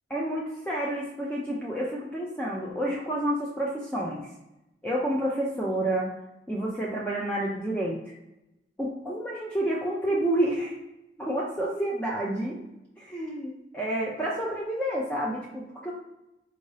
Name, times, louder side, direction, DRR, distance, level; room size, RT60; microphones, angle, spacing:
voice 1, 0.1-4.2 4.8-6.1 6.5-8.0 8.8-10.7 11.2-12.6 13.0-15.9, right 1 dB, 10° left, -5 dB, 0.5 m, -29 dB
4.5 x 2.7 x 3.2 m, 0.92 s
head